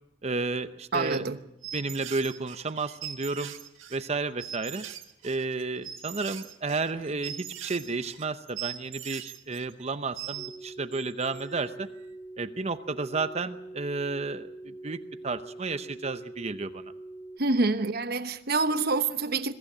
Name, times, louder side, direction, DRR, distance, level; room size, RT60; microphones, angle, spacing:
voice 1, 0.2-1.3 1.7-3.5 3.9-4.9 5.2-11.9 12.4-15.0 15.2-16.9, right 3 dB, 35° right, 10 dB, 0.8 m, -32 dB
voice 2, 0.9-1.4 17.4-19.5, right 3 dB, 55° right, 10 dB, 1.1 m, -26 dB
sound 1, 1.6-10.6 10.9-11.7, right 11 dB, 80° right, 1.6 m, -41 dB
sound 2, 10.4-17.4, right 2 dB, 5° left, 2.0 m, -44 dB
22.5 x 14.5 x 8.7 m, 0.83 s
head